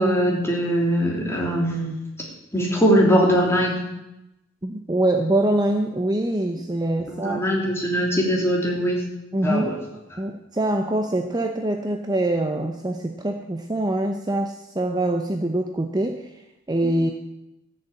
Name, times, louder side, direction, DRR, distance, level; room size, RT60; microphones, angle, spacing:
voice 1, 0.0-1.9 2.5-3.8 7.2-9.0 9.4-9.8, equal, 15° left, -2 dB, 3.2 m, -21 dB
voice 2, 4.6-7.4 9.3-9.7 10.2-16.3 16.7-17.1, right 1 dB, 20° right, 4 dB, 0.8 m, -24 dB
14.0 x 6.8 x 8.6 m, 0.92 s
head